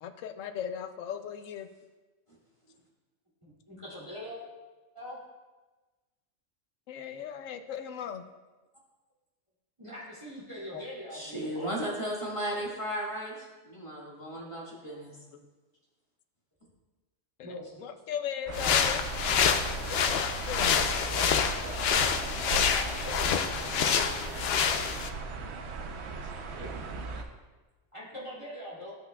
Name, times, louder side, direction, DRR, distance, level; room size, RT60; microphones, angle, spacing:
voice 1, 0.0-1.7 6.9-8.2 10.7-10.8 17.4-17.5 17.8-19.5 20.1-20.8, left 8 dB, 85° left, 8 dB, 1.0 m, -38 dB
voice 2, 3.4-4.4 4.9-5.2 9.8-11.8 17.4-17.9 20.9-23.9 24.2-24.3 26.5-27.0 27.9-29.0, equal, 25° right, -9 dB, 2.4 m, -43 dB
voice 3, 11.1-15.2, equal, 25° left, -5 dB, 1.8 m, -35 dB
sound 1, 18.5-25.1, left 7 dB, 65° left, 0.7 m, -27 dB
sound 2, 18.5-27.2, right 3 dB, 65° right, 0.9 m, -37 dB
15.5 x 5.7 x 2.3 m, 1.2 s
omnidirectional pair, 1.3 m